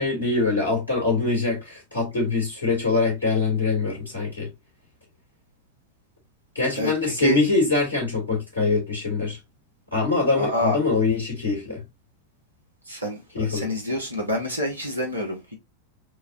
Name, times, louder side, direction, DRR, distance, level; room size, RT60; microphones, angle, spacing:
voice 1, 0.0-4.5 6.6-9.4 9.9-11.8 13.3-13.7, left 3 dB, 80° left, 2.1 m, -23 dB
voice 2, 6.7-7.4 10.4-10.8 12.9-15.5, left 1 dB, 85° right, 1.2 m, -27 dB
6.4 x 2.4 x 2.6 m
figure-of-eight pair, 90°, 0 cm